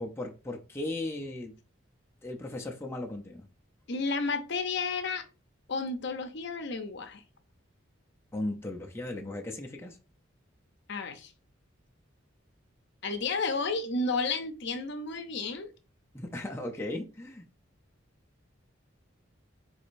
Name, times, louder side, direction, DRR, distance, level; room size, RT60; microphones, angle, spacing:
voice 1, 0.0-1.5 2.2-3.5 8.3-10.0 16.1-17.4, left 1 dB, 10° left, 0.6 m, -36 dB
voice 2, 3.9-5.2 5.7-7.2 10.9-11.3 13.0-15.7, left 3 dB, 60° left, 0.7 m, -32 dB
4.8 x 4.1 x 2.6 m
head